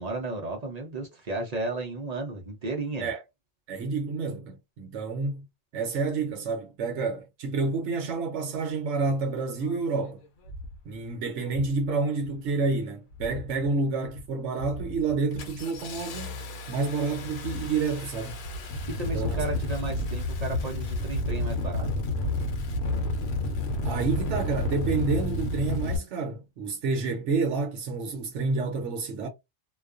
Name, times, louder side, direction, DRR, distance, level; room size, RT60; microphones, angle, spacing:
voice 1, 0.0-3.1 18.7-21.9, right 3 dB, 50° right, 0.5 m, -34 dB
voice 2, 3.7-5.5 5.7-10.2 10.8-16.4 16.7-18.4 19.1-19.4 23.8-29.3, right 4 dB, 70° right, 0.9 m, -29 dB
Engine starting, 9.6-9.7 10.4-10.8 11.5-11.8 12.1-12.7 13.1-13.7 14.0-14.3 14.6-26.0, left 2 dB, 75° left, 0.9 m, -31 dB
2.3 x 2.2 x 2.4 m
omnidirectional pair, 1.3 m